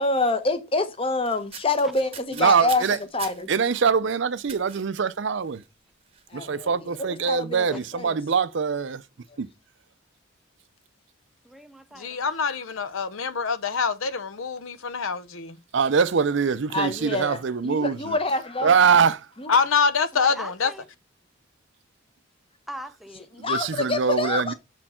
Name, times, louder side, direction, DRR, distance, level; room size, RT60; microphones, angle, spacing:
voice 1, 0.0-2.8 3.1-3.5 6.3-6.9 7.3-8.2 16.7-18.8 19.4-19.6 23.4-24.5, left 2 dB, 25° left, 0.9 m, -26 dB
sound 1, 1.2-3.8 4.5-4.9 5.4-5.6 6.0-6.2, right 7 dB, 30° right, 0.9 m, -42 dB
voice 2, 2.4-3.0 3.5-5.6 6.3-9.0 9.4-9.5 15.7-18.2 18.6-19.3 23.4-24.5, right 6 dB, 60° right, 0.5 m, -23 dB
voice 3, 11.4-12.2 20.1-20.9 22.7-23.3, equal, ahead, 0.4 m, -40 dB
voice 4, 12.0-15.6 19.5-20.7, left 5 dB, 80° left, 0.8 m, -25 dB
6.4 x 4.3 x 4.3 m
head